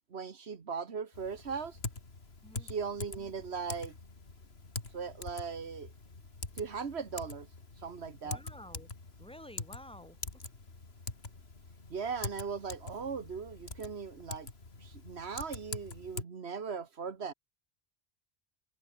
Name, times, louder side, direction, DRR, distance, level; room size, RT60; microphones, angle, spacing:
voice 1, 0.1-1.8 2.6-4.0 4.9-5.9 6.6-7.5 7.8-8.4 11.9-14.5 14.8-17.3, right 5 dB, 90° right, 1.7 m, -38 dB
Typing, 1.1-16.2, left 3 dB, 75° left, 2.9 m, -44 dB
voice 2, 8.2-8.9 9.2-10.2, left 1 dB, 5° left, 4.0 m, -50 dB
omnidirectional pair, 1.1 m